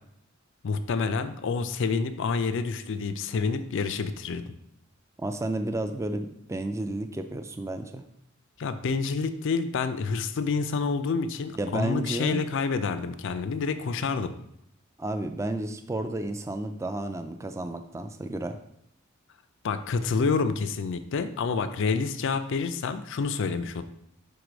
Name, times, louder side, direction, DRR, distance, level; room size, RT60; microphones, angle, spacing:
voice 1, 0.6-4.6 8.6-14.3 19.6-23.8, left 4 dB, 60° left, 11 dB, 0.4 m, -28 dB
voice 2, 5.2-8.0 11.6-12.4 15.0-18.6, right 2 dB, 15° right, 7 dB, 0.3 m, -32 dB
5.0 x 4.7 x 5.0 m, 0.76 s
head